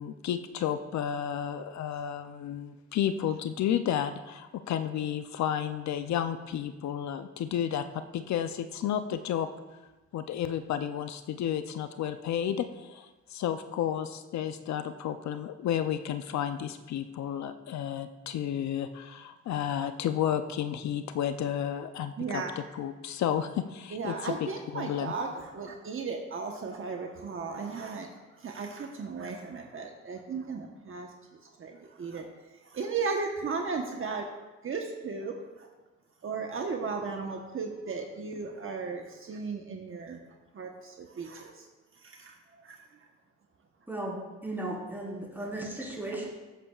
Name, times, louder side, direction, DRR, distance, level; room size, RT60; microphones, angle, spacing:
voice 1, 0.0-9.5 10.1-25.1, left 9 dB, 65° left, 10 dB, 0.6 m, -32 dB
voice 2, 22.2-22.5 23.9-31.1 31.6-32.3 32.6-34.3 34.6-35.7 36.2-40.2 40.5-41.6 42.0-42.4 42.6-42.8, right 4 dB, 45° right, 2 dB, 1.1 m, -35 dB
voice 3, 43.9-46.3, right 1 dB, 5° right, -4 dB, 4.1 m, -36 dB
19.0 x 8.4 x 2.4 m, 1.2 s
cardioid pair, 90°, 30 cm